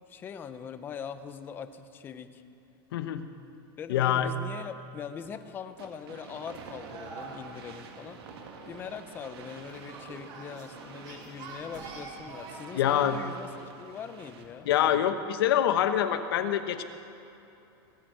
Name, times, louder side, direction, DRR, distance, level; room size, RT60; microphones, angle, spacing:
voice 1, 0.1-2.4 3.8-8.2 8.7-15.2, left 7 dB, 15° left, 11 dB, 0.6 m, -42 dB
voice 2, 2.9-3.3 3.9-4.3 12.7-13.2 14.7-16.8, left 10 dB, 75° left, 10 dB, 1.0 m, -25 dB
sound 1, 5.8-14.7, right 5 dB, 90° right, 1.9 m, -48 dB
sound 2, 6.5-13.3, right 3 dB, 30° right, 3.0 m, -46 dB
19.0 x 8.2 x 7.7 m, 2.9 s
supercardioid pair, 170°, 13 cm